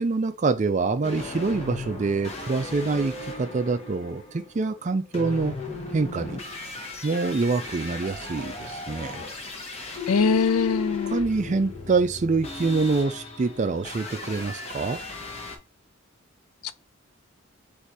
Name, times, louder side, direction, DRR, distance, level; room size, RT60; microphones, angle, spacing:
voice 1, 0.0-5.5 5.9-6.4 7.0-9.2 11.1-15.0, right 3 dB, 35° right, 0.4 m, -25 dB
sound 1, 1.0-15.6, left 4 dB, 30° left, 0.9 m, -36 dB
voice 2, 10.1-11.2 16.6-16.7, left 4 dB, 85° left, 0.4 m, -22 dB
4.1 x 2.6 x 4.7 m
head